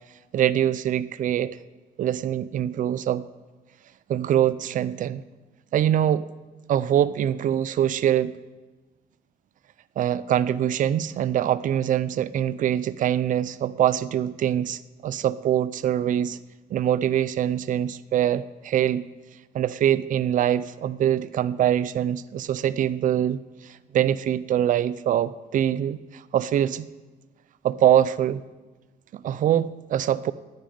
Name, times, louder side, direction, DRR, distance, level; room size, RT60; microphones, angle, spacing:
voice 1, 0.3-1.6 2.0-3.2 4.1-5.2 5.7-6.2 6.7-8.3 10.0-16.4 16.7-19.0 19.5-26.9 27.6-28.4 29.1-30.3, right 10 dB, 55° right, 16 dB, 0.5 m, -24 dB
9.3 x 8.9 x 9.1 m, 1.2 s
cardioid pair, 140°, 16 cm